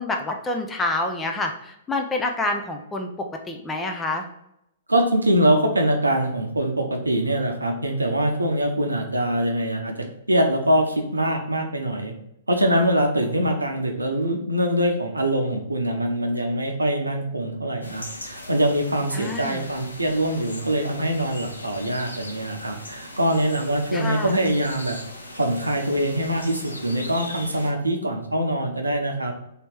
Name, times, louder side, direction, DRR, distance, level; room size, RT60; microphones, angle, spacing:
voice 1, 0.0-4.3 19.1-19.7 23.9-24.4, left 2 dB, 10° left, 2 dB, 0.5 m, -28 dB
voice 2, 4.9-9.9 10.3-12.1 12.5-25.0 25.3-29.3, right 1 dB, 80° right, 4 dB, 0.7 m, -23 dB
sound 1, 17.8-27.7, left 1 dB, 80° left, 0.6 m, -39 dB
3.3 x 3.0 x 4.5 m, 0.80 s
figure-of-eight pair, 110°, 0 cm